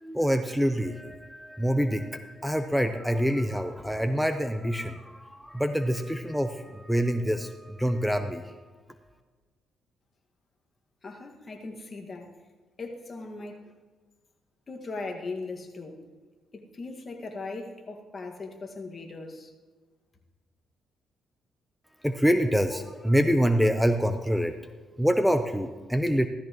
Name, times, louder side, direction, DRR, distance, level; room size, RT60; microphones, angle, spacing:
voice 1, 0.0-8.6 22.0-24.5 25.0-26.3, equal, ahead, 8 dB, 0.6 m, -26 dB
voice 2, 11.0-12.3 12.8-13.7 14.7-16.0 16.5-19.5, left 3 dB, 35° left, 2 dB, 1.8 m, -39 dB
15.5 x 13.5 x 3.1 m, 1.4 s
cardioid pair, 90°, 0 cm